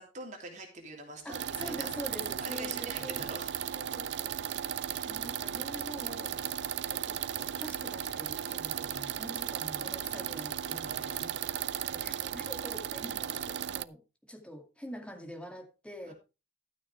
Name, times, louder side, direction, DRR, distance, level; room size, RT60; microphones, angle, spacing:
voice 1, 0.0-1.9 2.4-3.7 4.9-5.0 10.8-11.5 11.9-12.1 16.0-16.1, right 2 dB, 40° right, 2.9 m, -45 dB
voice 2, 1.2-3.4 3.7-4.4 4.7-6.4 6.8-14.0 14.3-16.1, equal, 5° left, 2.2 m, -45 dB
sound 1, 1.3-13.8, right 9 dB, 70° right, 0.5 m, -36 dB
sound 2, 4.6-11.8, left 4 dB, 60° left, 2.7 m, -59 dB
12.5 x 9.1 x 3.3 m
head